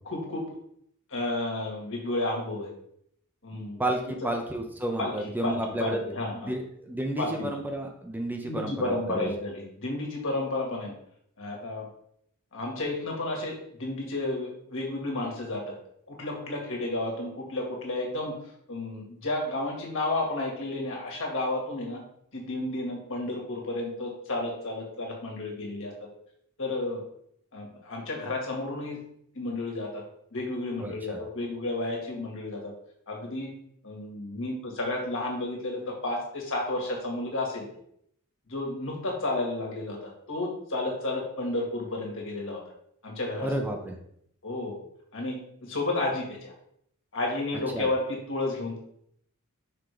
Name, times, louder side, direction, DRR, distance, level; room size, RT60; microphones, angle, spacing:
voice 1, 0.1-0.4 1.1-2.7 3.4-3.8 5.0-5.1 5.4-6.5 7.2-7.5 8.3-10.9 11.4-11.9 12.5-15.7 16.1-18.3 18.7-22.0 22.3-25.9 26.6-27.0 27.5-29.0 29.4-30.0 30.3-32.7 33.1-33.5 33.8-37.6 38.5-42.6 43.0-43.5 44.4-44.8 45.1-46.5 47.1-48.8, left 2 dB, 65° left, -1 dB, 2.0 m, -32 dB
voice 2, 3.5-6.0 6.5-9.3 30.8-31.2 43.4-44.0 47.7-47.9, right 1 dB, 10° right, 2 dB, 0.6 m, -32 dB
5.8 x 3.7 x 4.9 m, 0.69 s
head